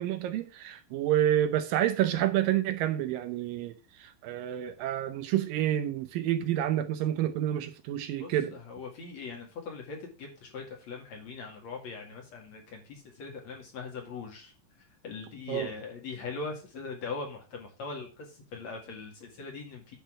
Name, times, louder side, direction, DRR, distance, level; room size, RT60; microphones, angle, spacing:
voice 1, 0.0-8.6 15.5-15.7, right 11 dB, 75° right, 2.3 m, -29 dB
voice 2, 8.2-14.5 15.0-20.0, left 4 dB, 50° left, 3.1 m, -41 dB
10.0 x 4.3 x 6.3 m
omnidirectional pair, 4.3 m